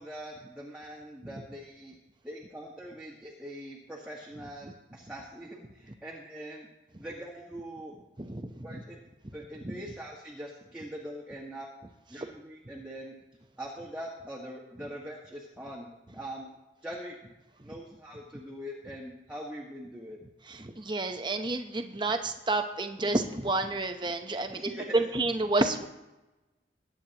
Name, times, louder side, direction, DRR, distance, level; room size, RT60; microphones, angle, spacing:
voice 1, 0.0-1.9 2.2-6.7 7.0-7.9 8.6-9.0 9.3-11.7 12.1-13.2 13.6-16.6 16.8-17.2 17.6-20.2 24.5-25.0, equal, 5° right, -4 dB, 1.6 m, -42 dB
voice 2, 8.2-8.8 9.6-9.8 20.5-24.6 24.9-25.9, right 2 dB, 25° right, 7 dB, 0.9 m, -30 dB
22.0 x 9.6 x 3.0 m, 1.0 s
head